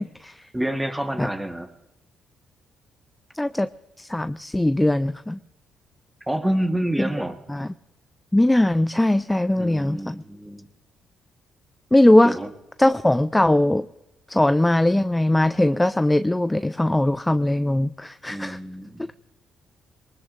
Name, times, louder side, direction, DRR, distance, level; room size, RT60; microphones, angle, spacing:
voice 1, 0.0-0.5 1.2-1.3 3.3-3.7 4.0-5.4 7.0-7.1 7.5-7.7 8.3-10.2 11.9-12.4 12.8-13.9 14.3-18.6 19.0-19.1, left 1 dB, 10° left, 11 dB, 0.4 m, -20 dB
voice 2, 0.5-1.7 6.3-7.4 9.6-10.7 12.2-12.5 18.3-19.1, right 1 dB, 10° right, 6 dB, 1.4 m, -27 dB
22.5 x 20.0 x 2.6 m, 0.97 s
cardioid pair, 90°, 0 cm